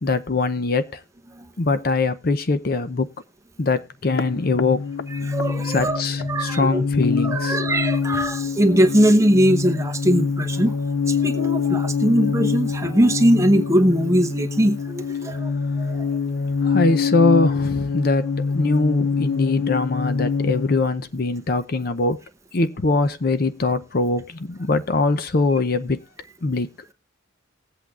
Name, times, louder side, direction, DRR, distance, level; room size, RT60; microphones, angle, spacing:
voice 1, 0.0-1.0 1.6-3.1 3.6-4.8 5.6-7.6 16.6-22.2 22.5-26.0 26.4-26.7, left 3 dB, 50° left, 0.6 m, -22 dB
sound 1, 4.1-20.8, left 5 dB, 90° left, 0.5 m, -25 dB
voice 2, 5.2-6.0 6.3-6.8 7.2-10.8 11.1-15.5 15.8-16.0, equal, 15° right, 0.8 m, -20 dB
20.0 x 8.2 x 2.4 m
head